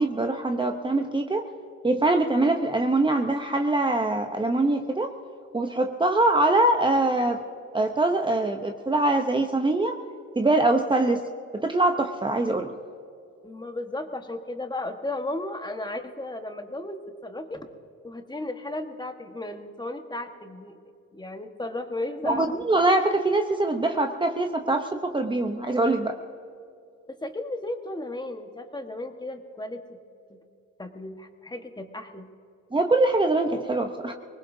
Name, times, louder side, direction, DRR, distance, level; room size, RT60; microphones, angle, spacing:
voice 1, 0.0-1.5 1.8-5.1 5.5-7.4 7.7-10.0 10.4-11.2 11.5-12.7 22.2-26.1 32.7-34.1, right 2 dB, 15° right, 4 dB, 0.8 m, -23 dB
voice 2, 13.4-17.7 18.0-20.8 21.1-22.5 27.1-30.0 30.3-30.4 30.8-32.3, left 1 dB, 15° left, 5 dB, 1.4 m, -35 dB
24.0 x 20.0 x 2.7 m, 2.6 s
cardioid pair, 90°, 30 cm